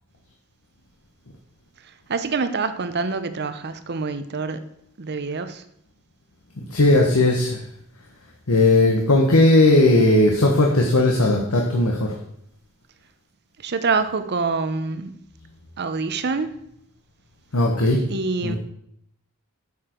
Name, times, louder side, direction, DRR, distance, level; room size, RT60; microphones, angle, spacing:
voice 1, 2.1-4.6 5.0-5.6 13.6-15.1 15.8-16.6 18.1-18.6, right 4 dB, 50° right, 11 dB, 0.7 m, -26 dB
voice 2, 6.7-7.6 8.5-12.1 17.5-18.0 18.4-18.6, left 2 dB, 65° left, 1 dB, 1.2 m, -17 dB
8.5 x 7.1 x 4.5 m, 0.74 s
head